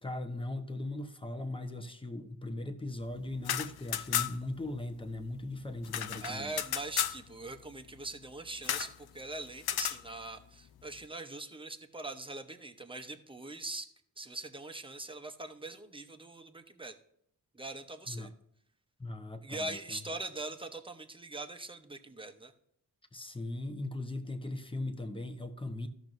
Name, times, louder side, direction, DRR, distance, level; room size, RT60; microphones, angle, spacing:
voice 1, 0.0-6.6 18.1-18.3 19.0-20.0 23.1-25.9, left 2 dB, 15° left, 1.0 m, -39 dB
sound 1, 3.3-4.6 4.8-4.9 5.2-7.2 8.6-9.0 9.6-10.0, left 10 dB, 80° left, 0.5 m, -33 dB
voice 2, 6.2-13.9 14.2-17.0 17.5-18.3 19.4-22.5, right 2 dB, 15° right, 0.9 m, -42 dB
14.0 x 6.1 x 2.7 m
cardioid pair, 70°, 37 cm